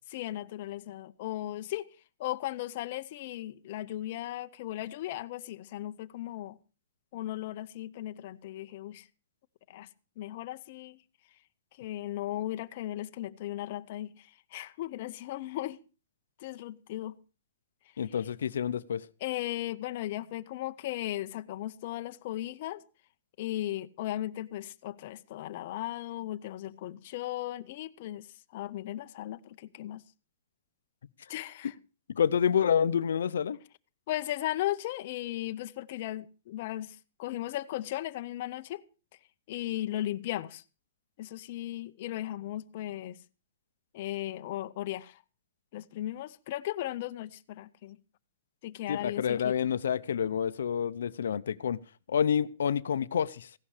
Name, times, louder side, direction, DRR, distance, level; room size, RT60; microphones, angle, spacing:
voice 1, 0.1-1.9 2.2-6.6 7.1-9.0 9.7-9.9 10.2-11.0 11.8-15.8 16.4-17.1 19.2-22.8 23.4-28.3 28.5-30.0 31.3-31.7 34.1-38.8 39.5-40.6 41.2-43.2 43.9-45.2 45.7-48.0 48.6-49.5, left 14 dB, 35° left, 0.6 m, -36 dB
voice 2, 18.0-19.1 32.1-33.6 48.9-51.8 52.1-53.5, left 8 dB, 80° left, 0.6 m, -28 dB
15.5 x 11.5 x 4.9 m
hypercardioid pair, 175°, 0 cm